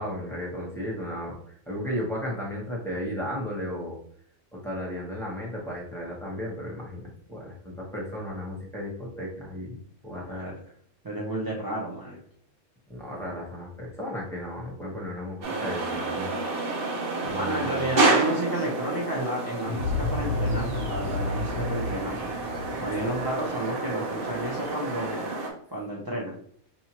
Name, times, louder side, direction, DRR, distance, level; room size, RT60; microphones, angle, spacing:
voice 1, 0.0-4.0 4.5-9.8 10.0-10.5 12.9-16.3 16.7-16.8 17.2-17.8, equal, ahead, -5 dB, 1.0 m, -34 dB
voice 2, 10.1-10.5 11.0-12.2 17.3-22.3 22.8-25.3 25.7-26.4, right 1 dB, 25° right, -5 dB, 0.5 m, -32 dB
sound 1, 15.4-25.5, right 3 dB, 45° right, 1.0 m, -29 dB
sound 2, 19.7-24.4, left 2 dB, 65° left, 0.8 m, -31 dB
5.4 x 2.7 x 2.9 m, 0.62 s
omnidirectional pair, 1.5 m